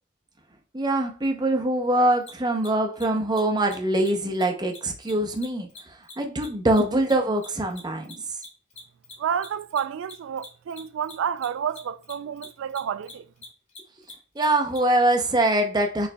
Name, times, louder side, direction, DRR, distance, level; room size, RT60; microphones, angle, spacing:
voice 1, 0.7-8.2 14.4-16.1, right 1 dB, 20° right, 0.6 m, -23 dB
Mechanisms, 2.2-2.3 2.6-2.7 2.9-3.0 3.3-3.4 3.6-3.7 4.0-4.1 4.3-4.4 4.7-7.5 7.7-14.8, left 4 dB, 35° left, 2.1 m, -44 dB
voice 2, 9.2-13.3, right 8 dB, 65° right, 0.3 m, -30 dB
6.5 x 3.2 x 2.2 m
head